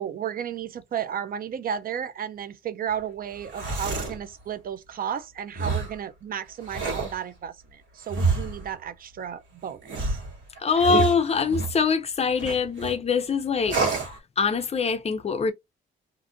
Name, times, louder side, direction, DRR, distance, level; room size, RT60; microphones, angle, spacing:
voice 1, 0.0-10.2, right 9 dB, 45° right, 0.4 m, -33 dB
sound 1, 3.3-4.2 5.5-6.0 6.6-7.2 8.1-8.7 9.8-11.8 12.4-12.9 13.6-14.2, right 4 dB, 70° right, 1.4 m, -28 dB
voice 2, 10.6-13.8 14.4-15.5, left 5 dB, 30° left, 0.4 m, -23 dB
2.5 x 2.4 x 2.6 m
cardioid pair, 90°, 20 cm